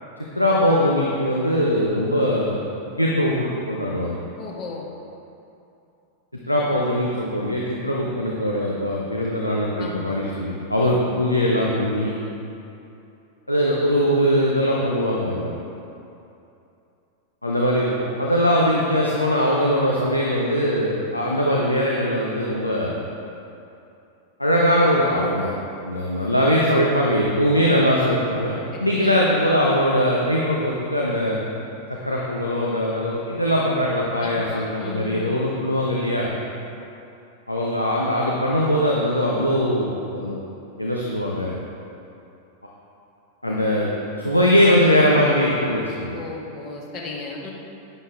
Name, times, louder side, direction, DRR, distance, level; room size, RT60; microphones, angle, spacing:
voice 1, 0.3-2.6 3.0-4.2 6.5-12.1 13.5-15.5 17.4-22.9 24.4-25.5 25.8-31.4 32.0-36.3 37.5-40.4 40.8-41.5 43.4-43.9 44.2-46.2, equal, 85° left, -4 dB, 1.0 m, -21 dB
voice 2, 4.4-4.9 9.8-10.2 10.8-11.0 28.7-29.2 34.2-35.4 46.1-47.5, left 4 dB, 35° left, -1 dB, 1.7 m, -35 dB
11.0 x 9.3 x 3.6 m, 2.8 s
figure-of-eight pair, 90°, 0 cm